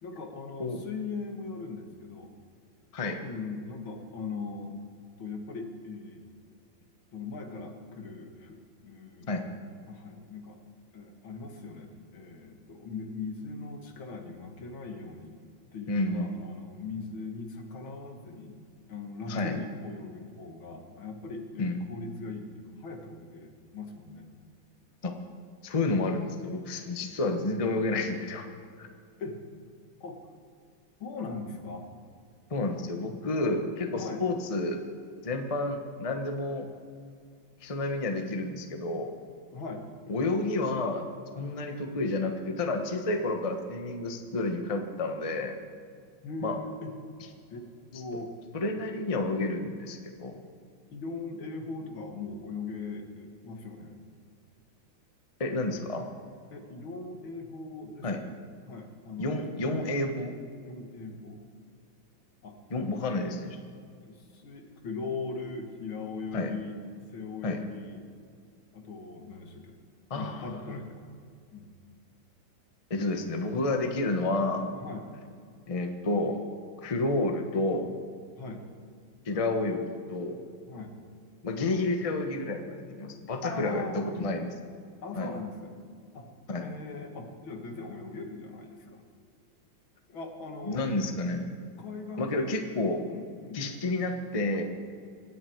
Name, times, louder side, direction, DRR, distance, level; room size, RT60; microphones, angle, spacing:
voice 1, 0.0-2.3 3.2-4.8 5.2-6.2 7.1-9.3 9.9-10.6 10.9-15.3 15.7-18.6 18.9-24.3 29.2-29.4 30.0-30.2 31.0-31.9 33.9-34.2 39.5-39.8 46.2-47.0 47.5-48.3 50.9-54.0 56.5-58.3 58.7-59.4 60.6-61.4 62.4-63.0 64.0-68.0 68.7-69.8 70.1-71.0 71.5-71.7 74.8-75.1 78.4-78.6 80.7-81.0 83.4-84.3 85.0-85.7 86.1-86.3 86.6-89.0 90.1-90.8 91.8-92.7 93.0-93.6, left 4 dB, 80° left, 4 dB, 2.5 m, -40 dB
voice 2, 15.9-16.3 19.3-19.6 21.6-21.8 25.0-25.1 25.6-28.5 28.8-28.9 32.5-34.8 35.2-36.7 37.6-39.1 40.1-41.0 41.3-45.6 46.4-46.6 48.5-50.4 55.4-56.1 58.0-58.2 59.2-60.4 62.7-63.6 66.3-66.5 67.4-67.6 70.1-70.8 72.9-74.7 75.7-76.4 76.8-77.9 79.2-80.4 81.4-84.5 85.2-85.3 86.5-86.7 90.6-91.5 92.2-93.0 93.5-94.6, left 2 dB, 20° left, 5 dB, 1.0 m, -30 dB
25.5 x 9.8 x 4.6 m, 2.3 s
omnidirectional pair, 2.2 m